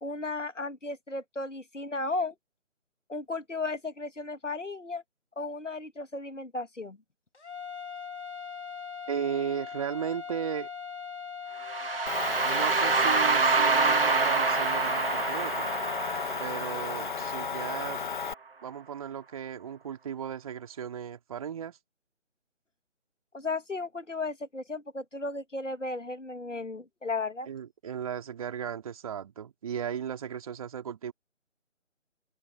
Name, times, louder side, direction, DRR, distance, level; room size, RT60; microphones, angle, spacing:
voice 1, 0.0-2.3 3.1-5.0 5.4-7.0 23.3-27.5, left 3 dB, 75° left, 2.2 m, -35 dB
sound 1, 7.3-16.3, left 7 dB, 60° left, 3.5 m, -41 dB
voice 2, 9.1-10.7 12.4-15.7 16.4-18.0 18.6-21.8 27.5-31.1, right 8 dB, 30° right, 3.6 m, -36 dB
sound 2, 11.6-17.6, right 4 dB, 50° right, 2.4 m, -27 dB
Motor vehicle (road) / Engine, 12.1-18.3, left 6 dB, 40° left, 1.9 m, -34 dB
open air
figure-of-eight pair, 150°, 37 cm